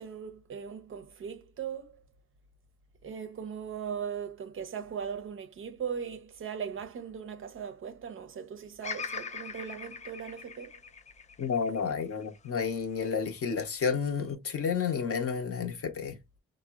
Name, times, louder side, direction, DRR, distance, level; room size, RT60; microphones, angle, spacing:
voice 1, 0.0-2.0 3.0-10.8, right 7 dB, 45° right, 0.5 m, -39 dB
Bird vocalization bird call bird song, 8.8-13.0 13.6-14.3, left 5 dB, 25° left, 0.4 m, -42 dB
voice 2, 11.4-16.2, left 6 dB, 50° left, 0.7 m, -31 dB
3.6 x 2.0 x 2.3 m
cardioid pair, 90°, 30 cm